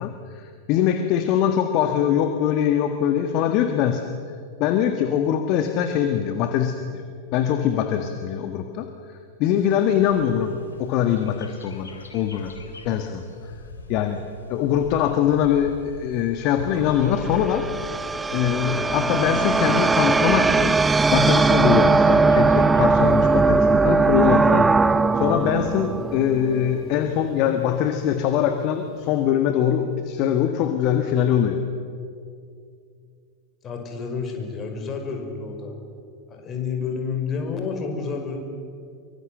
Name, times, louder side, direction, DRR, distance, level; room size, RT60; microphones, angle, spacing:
voice 1, 0.0-4.1 4.6-7.0 7.3-8.9 9.4-10.5 10.8-12.5 12.8-13.5 13.9-14.2 14.5-17.7 18.3-20.8 21.1-31.6, left 9 dB, 45° left, 7 dB, 1.6 m, -22 dB
Bird, 9.6-23.3, left 3 dB, 75° left, 3.4 m, -41 dB
sound 1, 16.7-27.0, right 4 dB, 15° right, 0.5 m, -20 dB
voice 2, 18.5-19.0 33.6-35.7 36.3-38.4, left 5 dB, 30° left, 3 dB, 5.6 m, -30 dB
24.5 x 24.0 x 8.0 m, 2.3 s
figure-of-eight pair, 90°, 0 cm